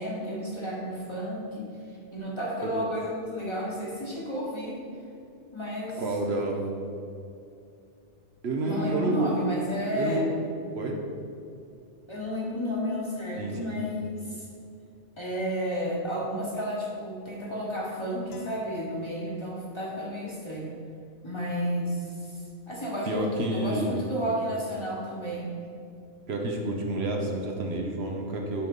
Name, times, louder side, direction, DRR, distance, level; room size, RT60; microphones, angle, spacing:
voice 1, 0.0-4.8 5.5-6.0 8.6-10.2 12.1-14.5 15.2-20.7 21.2-22.4 22.7-25.5, equal, 25° left, -4 dB, 1.2 m, -32 dB
voice 2, 6.0-6.6 8.4-9.4 10.0-10.3 10.7-11.0 13.4-13.7 23.0-24.0 26.3-28.7, right 1 dB, 65° right, 1 dB, 1.1 m, -29 dB
sound 1, 18.3-19.8, left 3 dB, 70° left, 0.9 m, -49 dB
8.5 x 3.9 x 5.3 m, 2.6 s
omnidirectional pair, 1.2 m